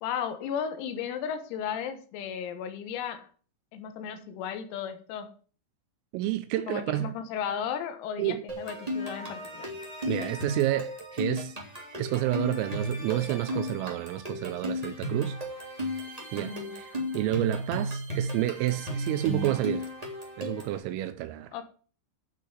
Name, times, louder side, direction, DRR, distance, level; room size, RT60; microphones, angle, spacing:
voice 1, 0.0-3.3 3.7-5.3 6.7-9.7 16.3-16.7 21.5-21.6, left 8 dB, 90° left, 4.2 m, -35 dB
voice 2, 6.1-7.1 8.2-8.4 10.1-11.6 12.0-15.4 16.3-19.9 20.4-21.5, right 14 dB, 85° right, 3.3 m, -30 dB
sound 1, 8.5-20.8, equal, 10° right, 1.7 m, -35 dB
12.0 x 6.1 x 7.4 m
omnidirectional pair, 6.0 m